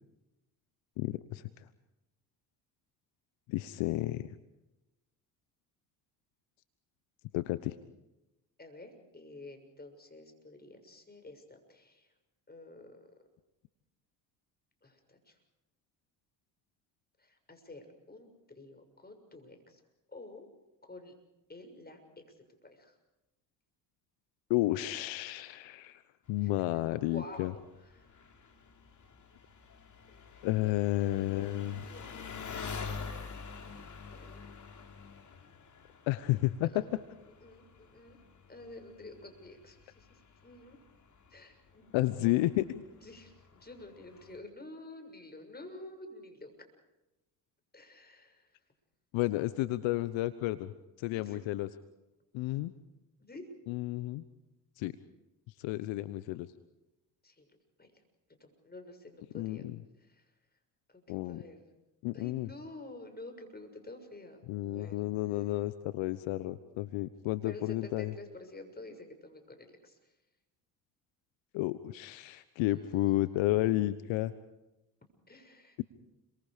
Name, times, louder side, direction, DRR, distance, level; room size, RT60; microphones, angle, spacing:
voice 1, 1.0-1.4 3.5-4.3 7.3-7.8 24.5-26.0 26.3-27.5 30.4-31.8 36.1-36.8 41.9-42.8 49.1-50.7 51.0-51.7 52.3-52.7 53.7-54.2 54.8-54.9 55.6-56.5 59.3-59.8 61.1-61.4 62.0-62.5 64.5-68.1 71.5-74.3, left 16 dB, 70° left, 14 dB, 1.1 m, -31 dB
voice 2, 8.6-12.1 12.5-13.0 14.8-15.3 17.2-18.3 18.6-19.8 20.1-20.5 20.8-21.1 21.5-22.0 22.6-22.9 26.4-26.6 27.1-27.6 27.9-28.1 30.6-30.7 31.1-31.5 31.9-32.9 34.1-34.4 36.6-36.9 37.4-38.2 38.5-40.2 40.4-40.8 41.3-41.9 43.0-46.5 47.7-48.5 51.1-51.4 53.2-53.4 57.2-57.4 57.8-57.9 58.4-59.7 60.1-60.2 60.9-61.6 62.1-65.0 67.4-70.0 72.7-73.1 75.3-75.8, left 2 dB, 20° left, 6 dB, 6.8 m, -49 dB
Engine, 26.3-44.4, left 5 dB, 35° left, 3.4 m, -48 dB
30.0 x 24.0 x 5.2 m, 0.98 s
hypercardioid pair, 60°, 48 cm